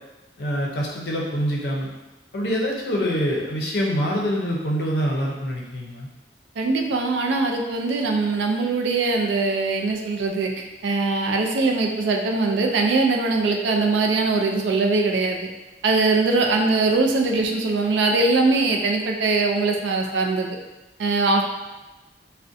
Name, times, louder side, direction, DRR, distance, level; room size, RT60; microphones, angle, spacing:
voice 1, 0.4-1.9 2.3-6.1, equal, 60° left, -2 dB, 0.5 m, -25 dB
voice 2, 6.6-15.4 15.8-20.5 21.0-21.4, right 3 dB, 75° right, 2 dB, 0.3 m, -21 dB
2.5 x 2.1 x 2.5 m, 1.1 s
head